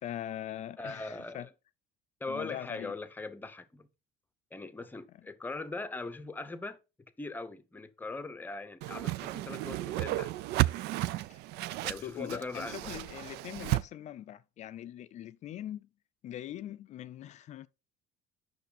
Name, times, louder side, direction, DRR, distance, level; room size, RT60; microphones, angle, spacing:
voice 1, 0.0-1.5 2.3-3.0 5.1-5.3 11.3-11.4 12.0-15.9 16.2-17.7, left 12 dB, 40° left, 0.4 m, -42 dB
voice 2, 0.8-1.5 2.2-3.9 4.5-6.8 7.2-10.3 11.8-12.9, left 3 dB, 10° left, 0.7 m, -40 dB
Whoosh swoosh swish, 8.8-13.8, right 17 dB, 65° right, 0.4 m, -33 dB
9.2 x 6.1 x 4.2 m
cardioid pair, 145°, 18 cm